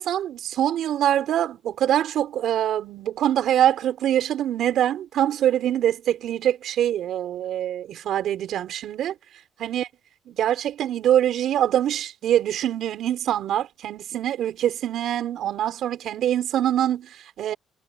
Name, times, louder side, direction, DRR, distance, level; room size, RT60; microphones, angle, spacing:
voice 1, 0.0-9.1 9.6-9.9 10.3-17.5, right 11 dB, 60° right, 5.8 m, -24 dB
cardioid pair, 135°, 0 cm